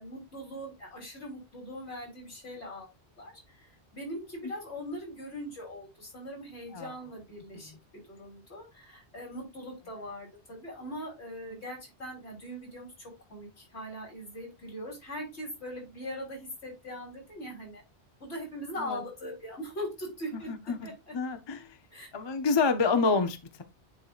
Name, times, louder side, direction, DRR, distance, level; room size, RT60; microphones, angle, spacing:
voice 1, 0.0-2.9 3.2-17.8 18.2-21.1 21.9-22.1, equal, 80° left, -1 dB, 3.6 m, -41 dB
voice 2, 21.1-21.7 22.1-23.6, left 4 dB, 30° left, 8 dB, 0.6 m, -28 dB
9.2 x 4.7 x 2.4 m, 0.23 s
omnidirectional pair, 1.1 m